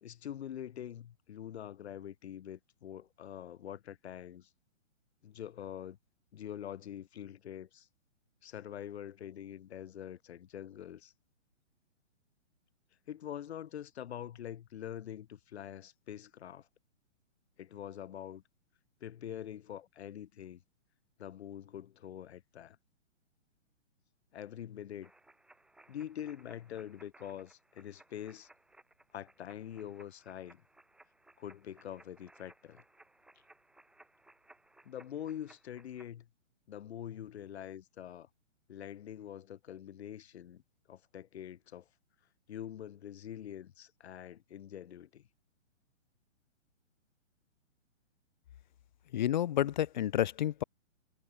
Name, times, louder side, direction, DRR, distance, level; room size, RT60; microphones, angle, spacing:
voice 1, 0.0-4.5 5.2-6.0 6.3-7.9 8.4-11.1 13.1-16.7 17.6-18.4 19.0-20.6 21.2-22.8 24.3-25.1 25.9-28.5 29.1-30.6 31.4-32.8 34.9-36.3 36.7-38.3 38.7-40.6 40.9-41.9 42.5-45.3, left 10 dB, 55° left, 1.6 m, -45 dB
sound 1, 25.0-36.1, right 2 dB, ahead, 1.1 m, -62 dB
voice 2, 49.1-50.6, left 11 dB, 40° left, 0.5 m, -30 dB
hypercardioid pair, 150°, 38 cm